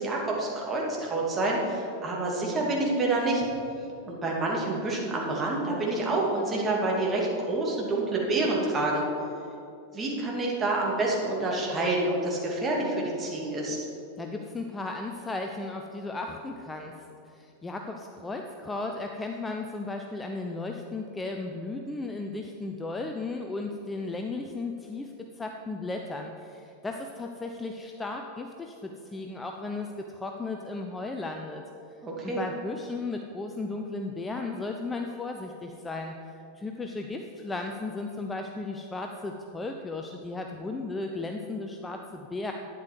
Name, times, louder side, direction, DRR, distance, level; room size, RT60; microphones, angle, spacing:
voice 1, 0.0-3.5 4.1-9.0 9.9-13.8 32.0-32.4, right 2 dB, 20° right, -3 dB, 2.5 m, -28 dB
voice 2, 14.2-17.0 17.2-31.6 32.2-42.5, left 3 dB, 10° left, 3 dB, 0.6 m, -35 dB
11.5 x 9.5 x 4.7 m, 2.7 s
figure-of-eight pair, 90°, 0 cm